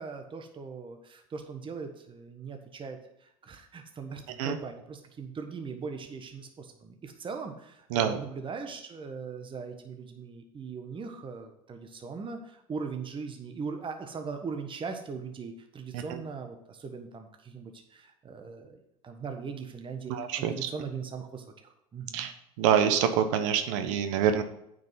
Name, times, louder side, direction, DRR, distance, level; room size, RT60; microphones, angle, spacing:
voice 1, 0.0-22.3, right 5 dB, 30° right, 5 dB, 1.4 m, -40 dB
voice 2, 20.1-20.7 22.1-22.3 22.6-24.4, right 8 dB, 65° right, 8 dB, 1.2 m, -26 dB
9.2 x 5.4 x 5.8 m, 0.77 s
hypercardioid pair, 75°, 18 cm